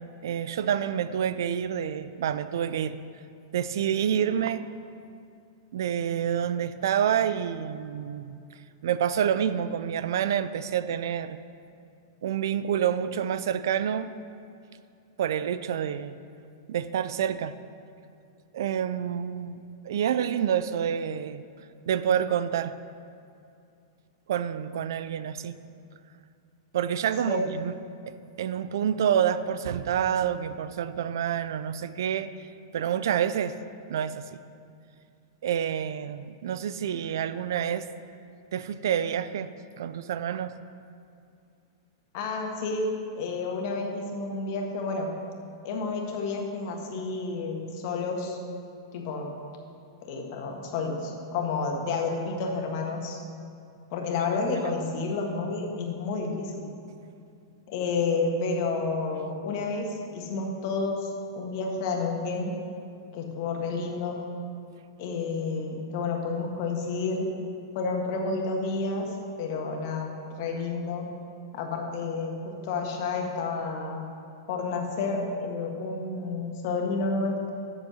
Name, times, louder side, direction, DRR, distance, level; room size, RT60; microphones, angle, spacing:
voice 1, 0.0-3.0 3.5-4.7 5.7-8.4 8.8-11.4 12.2-14.1 15.2-16.2 16.7-17.6 18.5-19.6 19.8-21.4 21.9-22.7 24.3-25.6 26.7-27.7 28.4-32.3 32.7-33.6 33.9-34.4 35.4-37.9 38.5-39.5 39.8-40.5, right 9 dB, 75° right, 14 dB, 0.4 m, -28 dB
voice 2, 42.1-42.9 43.1-45.1 45.6-48.4 48.9-49.3 50.1-53.2 53.9-56.7 57.7-62.5 63.1-64.2 65.0-67.3 67.7-69.1 69.4-71.1 71.5-74.0 74.5-77.5, left 4 dB, 55° left, 1 dB, 1.7 m, -30 dB
8.1 x 6.9 x 6.3 m, 2.5 s
hypercardioid pair, 120°, 2 cm